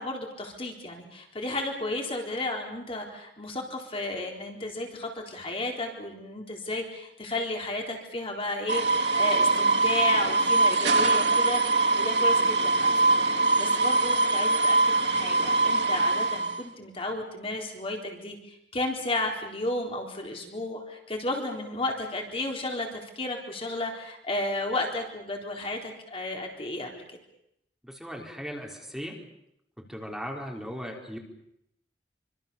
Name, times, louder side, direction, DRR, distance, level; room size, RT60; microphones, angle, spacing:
voice 1, 0.0-11.6 11.9-27.2, left 2 dB, 35° left, 1 dB, 3.9 m, -33 dB
sound 1, 8.7-16.6, right 3 dB, 80° right, 2.1 m, -23 dB
voice 2, 27.8-29.2 29.8-31.2, equal, ahead, 0 dB, 4.4 m, -38 dB
26.0 x 25.5 x 7.1 m, 0.77 s
head